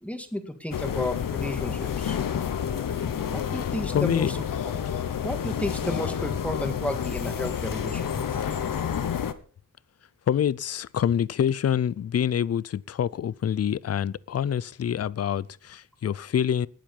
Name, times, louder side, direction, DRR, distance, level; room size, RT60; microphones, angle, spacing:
voice 1, 0.0-2.2 3.3-4.4 4.6-4.8 5.2-8.3, left 1 dB, 5° left, 1.8 m, -32 dB
sound 1, 0.7-9.3, left 8 dB, 80° left, 1.2 m, -29 dB
voice 2, 3.5-4.3 10.3-16.7, left 9 dB, 50° left, 0.5 m, -26 dB
19.0 x 7.8 x 5.3 m
wide cardioid pair, 160°, 33 cm